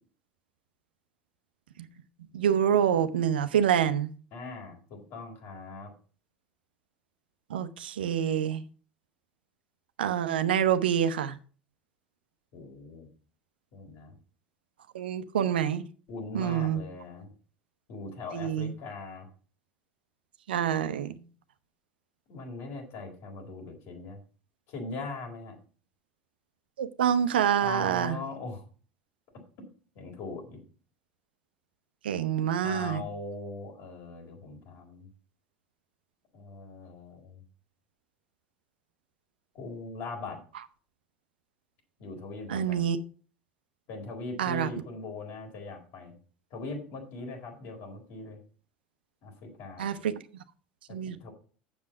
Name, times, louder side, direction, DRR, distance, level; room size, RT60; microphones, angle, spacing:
voice 1, 2.3-4.1 7.5-8.6 10.0-11.4 14.9-15.8 16.3-16.8 18.3-18.7 20.5-21.2 26.8-28.2 32.0-33.0 42.5-43.0 44.4-44.7 49.8-50.1 50.9-51.2, right 9 dB, 80° right, 0.8 m, -26 dB
voice 2, 4.3-5.9 12.5-13.1 13.7-14.1 16.1-17.3 17.9-19.3 22.3-24.2 24.7-25.6 27.6-28.6 29.9-30.6 32.6-35.1 36.3-37.4 39.5-40.4 42.0-42.9 43.9-46.1 46.5-48.4 49.2-49.9 50.9-51.3, left 3 dB, 60° left, 4.3 m, -40 dB
7.5 x 7.2 x 5.8 m
hypercardioid pair, 80°, 5 cm